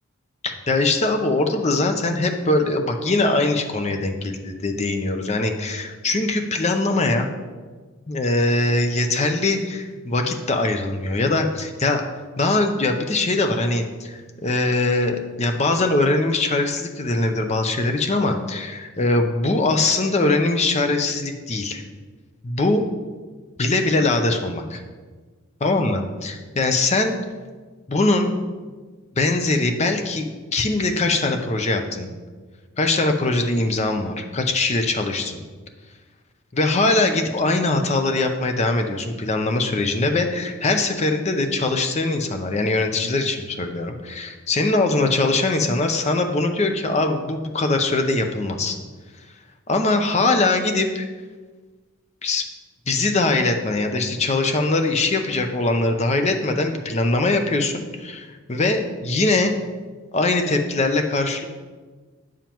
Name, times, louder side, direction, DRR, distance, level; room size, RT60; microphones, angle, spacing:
voice 1, 0.4-7.3 8.1-12.0 12.4-21.8 22.4-22.8 23.6-24.8 25.6-27.2 27.9-28.3 29.2-32.1 32.8-35.4 36.6-48.8 49.7-51.1 52.2-52.4 52.9-59.6 60.1-61.5, left 2 dB, 30° left, 5 dB, 0.6 m, -22 dB
8.7 x 7.1 x 3.0 m, 1.4 s
head